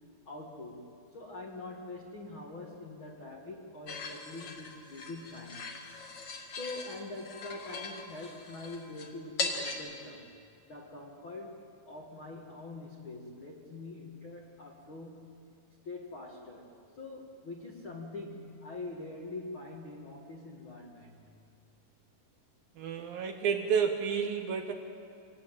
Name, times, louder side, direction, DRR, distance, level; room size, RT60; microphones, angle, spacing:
voice 1, 0.2-5.8 6.5-10.3 10.7-15.3 15.8-21.3, left 2 dB, 80° left, -2 dB, 1.1 m, -44 dB
sound 1, 3.9-9.7, left 4 dB, 45° left, 2.0 m, -40 dB
voice 2, 22.8-24.7, right 6 dB, 70° right, 5 dB, 2.3 m, -30 dB
25.5 x 19.0 x 8.9 m, 2.4 s
omnidirectional pair, 5.4 m